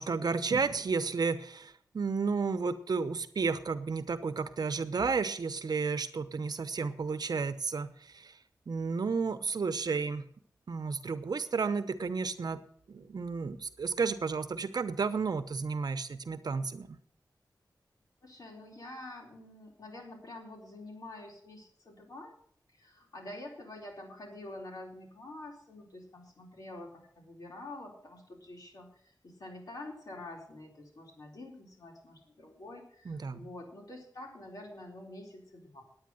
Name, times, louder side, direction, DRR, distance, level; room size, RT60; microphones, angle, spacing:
voice 1, 0.0-8.3 8.7-10.2 10.7-12.6 12.9-17.0 33.1-33.5, right 4 dB, 70° right, 10 dB, 0.9 m, -32 dB
voice 2, 18.2-22.3 22.7-35.8, left 2 dB, 60° left, 0 dB, 4.2 m, -47 dB
9.6 x 9.5 x 7.8 m, 0.63 s
wide cardioid pair, 110°, 7 cm